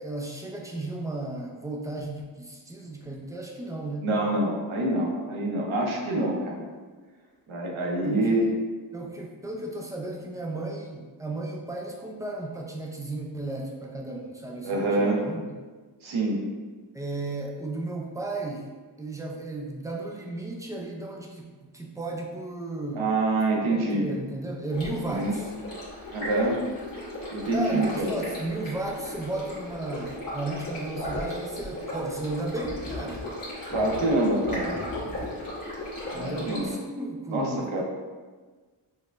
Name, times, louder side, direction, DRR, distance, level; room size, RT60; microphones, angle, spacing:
voice 1, 0.0-4.1 8.0-8.5 8.9-15.5 16.9-18.7 19.0-23.0 23.7-25.5 27.5-33.3 36.1-37.8, right 2 dB, 10° right, -1 dB, 0.3 m, -34 dB
voice 2, 4.0-6.7 7.5-8.4 14.6-15.2 16.0-16.4 23.0-24.1 25.0-25.4 26.1-26.6 27.3-28.2 33.7-34.8 36.1-36.7 37.3-37.8, right 2 dB, 85° right, 0 dB, 0.7 m, -26 dB
Stream, 24.7-36.7, left 1 dB, 45° left, 1.3 m, -36 dB
5.4 x 2.1 x 2.4 m, 1.4 s
wide cardioid pair, 150°, 47 cm